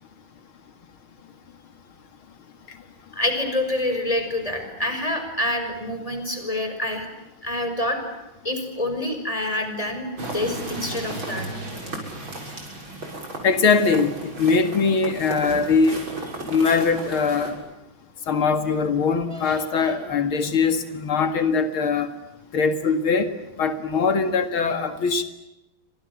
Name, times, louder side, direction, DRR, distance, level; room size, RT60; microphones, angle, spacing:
voice 1, 3.1-7.1 7.4-8.0 8.4-10.1 10.3-11.5 19.3-19.9, left 1 dB, 15° left, 6 dB, 5.8 m, -27 dB
sound 1, 10.2-17.5, right 2 dB, 75° right, 7.6 m, -34 dB
voice 2, 13.4-16.0 16.5-17.6 18.3-22.1 22.5-23.3 23.6-25.2, left 5 dB, 85° left, 9 dB, 2.9 m, -21 dB
29.0 x 26.0 x 7.5 m, 0.95 s
omnidirectional pair, 2.2 m